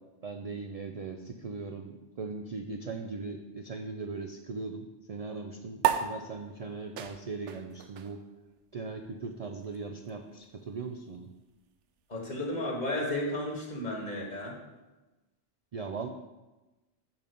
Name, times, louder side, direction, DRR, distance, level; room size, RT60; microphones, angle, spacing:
voice 1, 0.2-8.2 8.7-11.3 15.7-16.1, right 4 dB, 55° right, 5 dB, 0.4 m, -39 dB
sound 1, 5.8-12.6, right 9 dB, 80° right, 0.9 m, -36 dB
voice 2, 12.1-14.6, left 1 dB, 40° left, -1 dB, 1.7 m, -33 dB
5.6 x 5.3 x 6.7 m, 1.1 s
omnidirectional pair, 1.2 m